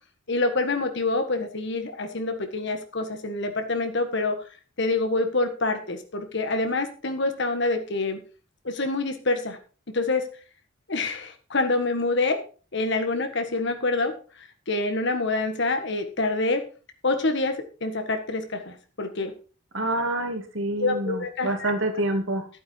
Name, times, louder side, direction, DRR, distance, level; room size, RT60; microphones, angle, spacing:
voice 1, 0.3-4.4 4.8-8.2 8.6-9.6 9.9-10.3 10.9-12.4 12.7-14.2 14.7-16.6 17.0-19.3 20.8-21.7, left 3 dB, 60° left, 7 dB, 1.6 m, -26 dB
voice 2, 19.7-22.5, right 1 dB, 70° right, 4 dB, 3.0 m, -27 dB
12.0 x 8.7 x 4.6 m, 0.37 s
head